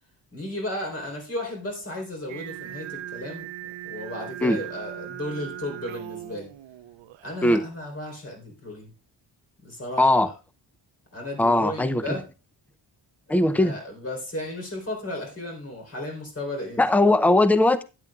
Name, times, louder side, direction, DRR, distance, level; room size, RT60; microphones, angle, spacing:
voice 1, 0.3-3.5 3.8-6.5 7.2-8.9 9.6-10.3 11.1-12.3 13.4-16.9, left 1 dB, 30° left, 3.8 m, -34 dB
Singing, 2.3-7.4, right 12 dB, 85° right, 0.6 m, -39 dB
voice 2, 10.0-10.3 11.4-12.2 13.3-13.7 16.8-17.8, left 2 dB, 5° left, 0.5 m, -19 dB
15.5 x 9.9 x 2.4 m
wide cardioid pair, 175°, 45 cm